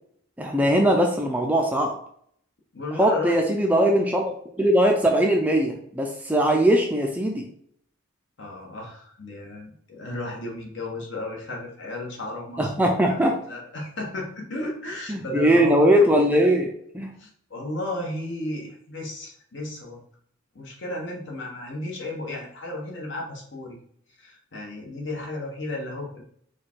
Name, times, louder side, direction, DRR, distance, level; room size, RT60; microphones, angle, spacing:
voice 1, 0.4-1.9 3.0-4.2 4.6-7.5 12.6-13.4 15.1-17.1, equal, 10° right, 1 dB, 0.4 m, -20 dB
voice 2, 2.7-3.4 8.4-13.2 13.5-15.8 17.2-20.0 20.5-23.8 24.2-26.2, left 1 dB, 60° left, -1 dB, 1.2 m, -34 dB
4.8 x 2.3 x 4.4 m, 0.64 s
head